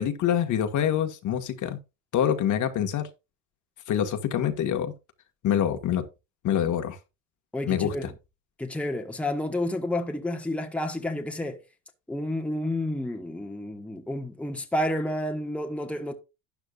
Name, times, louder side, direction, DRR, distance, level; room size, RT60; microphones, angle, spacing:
voice 1, 0.0-1.8 2.1-3.1 3.9-4.9 5.4-6.0 6.4-7.0 7.7-8.1, left 9 dB, 50° left, 1.7 m, -25 dB
voice 2, 7.5-8.1 8.6-11.6 12.1-16.1, left 1 dB, 5° left, 1.4 m, -30 dB
12.0 x 9.0 x 2.4 m
supercardioid pair, 115°, 38 cm